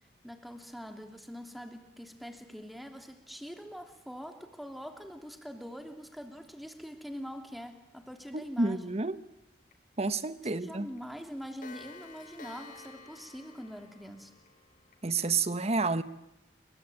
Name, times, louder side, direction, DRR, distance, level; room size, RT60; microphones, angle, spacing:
voice 1, 0.2-9.0 10.5-14.3, equal, ahead, 3.0 m, -44 dB
voice 2, 8.3-9.2 10.0-10.9 15.0-16.0, right 3 dB, 40° right, 1.2 m, -30 dB
Clock, 9.7-9.8 10.1-10.3 10.6-10.7 11.0-15.0, left 4 dB, 50° left, 2.8 m, -51 dB
28.5 x 23.0 x 8.8 m
head